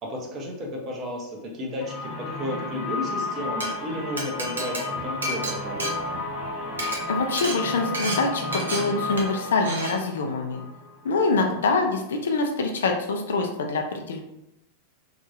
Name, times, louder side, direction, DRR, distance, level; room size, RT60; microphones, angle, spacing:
voice 1, 0.0-6.0 11.3-11.6, left 1 dB, 30° right, 0 dB, 0.6 m, -33 dB
sound 1, 1.8-11.5, left 2 dB, 30° left, 0.7 m, -33 dB
Glass, 3.4-3.7 4.2-6.4 6.7-7.0 7.4-7.6 7.9-8.2 8.5-8.8 9.2-9.4 9.6-9.9, right 1 dB, 70° right, 0.6 m, -31 dB
voice 2, 7.1-10.6 11.0-14.2, left 3 dB, 65° left, 3 dB, 0.3 m, -25 dB
2.8 x 2.2 x 2.5 m, 0.83 s
figure-of-eight pair, 90°, 0 cm